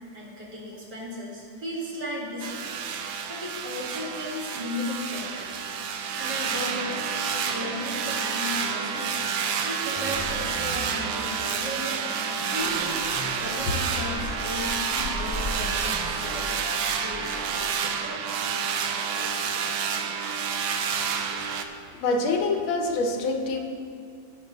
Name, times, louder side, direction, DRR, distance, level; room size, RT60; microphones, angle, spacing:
voice 1, 0.1-2.8 3.3-5.7 6.2-7.0 7.3-9.3 9.6-12.0 12.5-16.7 17.0-18.2, left 1 dB, 55° right, -5 dB, 2.8 m, -36 dB
sound 1, 2.4-21.7, right 6 dB, 75° right, 1.4 m, -29 dB
sound 2, 9.9-11.2 11.5-13.3 14.1-14.3 14.7-16.1, right 1 dB, 10° right, 1.5 m, -40 dB
Vehicle horn car horn honking, 12.6-17.7, left 2 dB, 55° left, 0.9 m, -37 dB
voice 2, 22.0-23.6, left 3 dB, 80° left, 4 dB, 1.8 m, -25 dB
16.5 x 6.5 x 4.0 m, 2.4 s
omnidirectional pair, 2.2 m